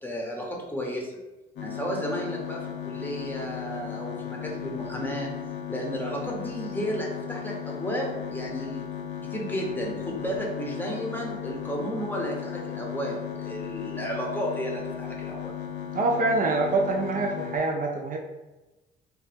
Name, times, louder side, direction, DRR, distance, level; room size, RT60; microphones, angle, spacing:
voice 1, 0.0-1.2 1.6-5.3 5.7-8.9 9.3-15.5, equal, 10° left, -1 dB, 0.7 m, -33 dB
sound 1, 1.6-17.6, left 9 dB, 70° left, 0.6 m, -36 dB
voice 2, 15.9-18.2, right 3 dB, 45° right, 1 dB, 0.4 m, -25 dB
2.7 x 2.1 x 3.3 m, 1.1 s
cardioid pair, 90°, 20 cm